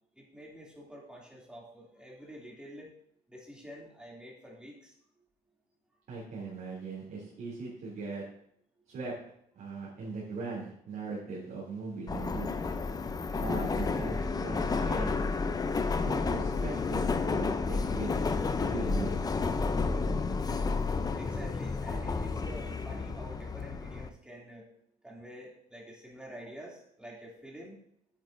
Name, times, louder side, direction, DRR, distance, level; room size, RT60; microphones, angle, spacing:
voice 1, 0.2-2.9 3.3-4.9 21.2-24.7 25.0-27.7, equal, 5° right, -3 dB, 2.8 m, -48 dB
voice 2, 6.1-8.2 8.9-9.1 9.5-12.5 13.3-15.1 16.0-18.2 18.6-19.2, right 4 dB, 55° right, -6 dB, 3.1 m, -39 dB
Subway metro underground, 12.1-24.1, left 4 dB, 20° left, 0.6 m, -31 dB
9.3 x 9.2 x 2.7 m, 0.70 s
cardioid pair, 110°, 17 cm